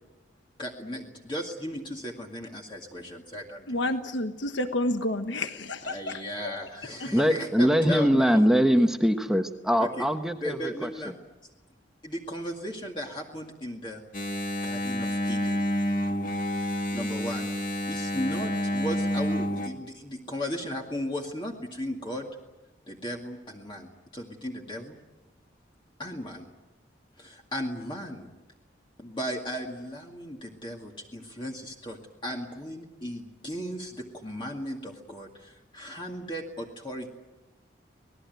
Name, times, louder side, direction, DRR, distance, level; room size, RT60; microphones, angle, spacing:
voice 1, 0.6-3.8 5.8-8.4 9.8-10.0 10.4-11.1 12.0-14.0 14.6-15.7 16.9-17.5 17.9-22.3 22.9-25.0 26.0-26.5 27.2-28.3 29.0-37.1, equal, 25° left, 0 dB, 2.2 m, -36 dB
voice 2, 3.7-6.2, left 1 dB, 80° left, 7 dB, 1.3 m, -29 dB
voice 3, 7.1-11.1, equal, 5° right, 5 dB, 1.1 m, -23 dB
Engine, 14.1-19.7, equal, 45° left, 2.3 m, -29 dB
26.5 x 20.0 x 9.3 m, 1.1 s
head